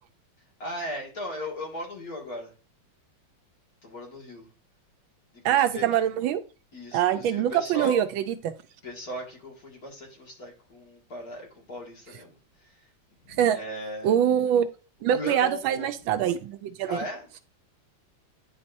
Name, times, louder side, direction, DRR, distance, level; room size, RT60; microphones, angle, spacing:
voice 1, 0.6-2.5 3.8-4.5 5.3-5.8 6.7-8.0 8.8-12.9 13.2-14.1 15.1-15.9 16.9-17.3, equal, 45° left, 2.3 m, -37 dB
voice 2, 5.4-6.4 6.9-8.5 13.4-13.6 14.0-14.7 15.0-17.0, right 10 dB, 80° right, 1.3 m, -24 dB
10.0 x 4.2 x 2.6 m
omnidirectional pair, 2.2 m